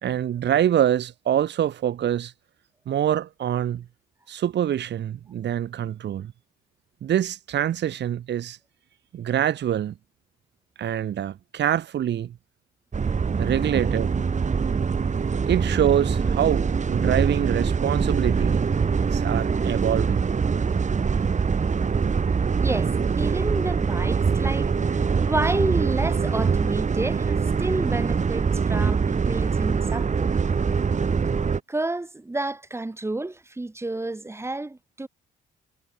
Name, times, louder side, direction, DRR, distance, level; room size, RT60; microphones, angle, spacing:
voice 1, 0.0-2.3 2.9-3.8 4.3-6.3 7.0-8.6 9.1-9.9 10.8-12.3 13.4-14.1 15.5-18.6 19.1-20.2, right 10 dB, 60° right, 1.4 m, -25 dB
sound 1, 12.9-31.6, right 5 dB, 35° right, 3.1 m, -23 dB
voice 2, 22.6-30.3 31.7-35.1, right 2 dB, 15° right, 1.8 m, -30 dB
cardioid pair, 90°, 20 cm